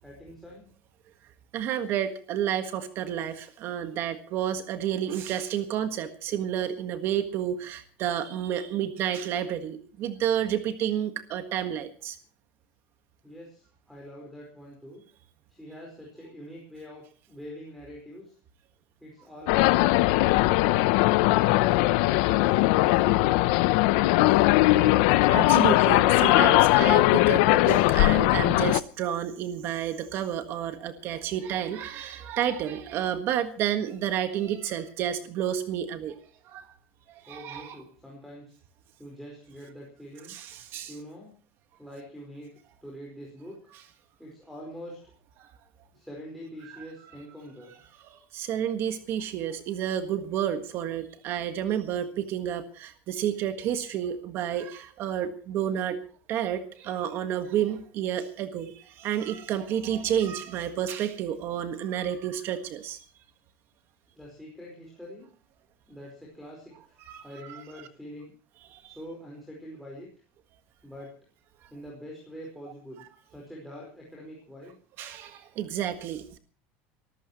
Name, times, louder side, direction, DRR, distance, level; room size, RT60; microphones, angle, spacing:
voice 1, 0.0-0.7 13.2-15.0 15.5-18.4 19.0-21.0 21.7-22.6 22.9-24.1 37.3-38.6 39.0-40.3 40.9-41.3 41.8-43.6 44.2-45.0 45.9-47.7 64.1-65.3 65.9-68.3 68.8-70.1 70.8-71.1 71.7-74.8, equal, ahead, -4 dB, 4.7 m, -45 dB
voice 2, 1.5-12.2 20.7-20.9 21.3-21.5 25.3-36.2 36.5-36.7 37.2-37.8 40.3-40.9 45.4-45.5 48.1-56.0 56.3-63.0 67.1-67.6 68.7-68.9 75.0-76.4, right 10 dB, 45° right, 9 dB, 1.6 m, -30 dB
sound 1, 19.5-28.8, left 19 dB, 70° left, 0.7 m, -20 dB
27.5 x 14.0 x 3.1 m, 0.40 s
cardioid pair, 160°, 6 cm